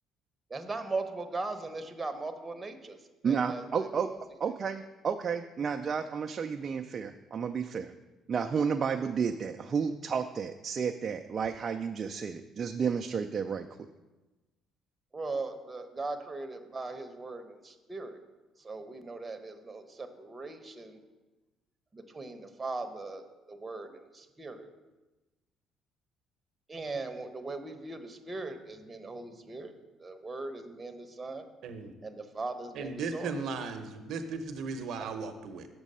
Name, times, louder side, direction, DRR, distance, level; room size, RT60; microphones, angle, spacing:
voice 1, 0.5-3.0 3.2-4.2 15.1-18.2 18.6-21.0 21.9-24.7 26.7-29.7 30.0-31.5 32.0-33.4, right 3 dB, 25° right, 7 dB, 1.0 m, -39 dB
voice 2, 3.2-4.1 4.4-7.9 8.3-13.7, right 6 dB, 45° right, 5 dB, 0.4 m, -31 dB
voice 3, 31.6-31.9 32.7-35.7, right 4 dB, 70° right, 8 dB, 0.8 m, -36 dB
7.2 x 6.1 x 5.5 m, 1.1 s
supercardioid pair, 75°, 0 cm